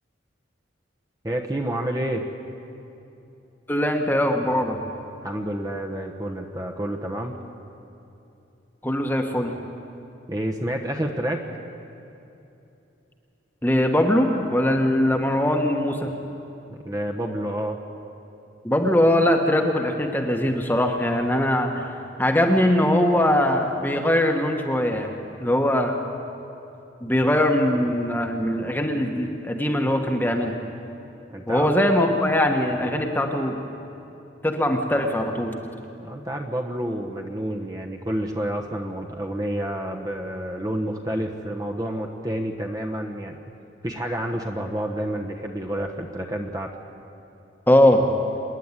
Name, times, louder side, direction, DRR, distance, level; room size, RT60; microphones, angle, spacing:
voice 1, 1.2-2.3 5.2-7.4 10.3-11.4 16.7-17.8 31.3-31.7 36.0-43.4 43.8-46.7, right 1 dB, 20° right, 2 dB, 1.1 m, -29 dB
voice 2, 3.7-4.8 8.8-9.5 13.6-16.1 18.6-21.8 22.2-25.1 25.4-25.9 27.0-30.6 31.5-33.5 34.4-35.5 47.7-48.0, left 1 dB, 10° left, 3 dB, 1.3 m, -21 dB
26.0 x 10.5 x 9.7 m, 2.9 s
head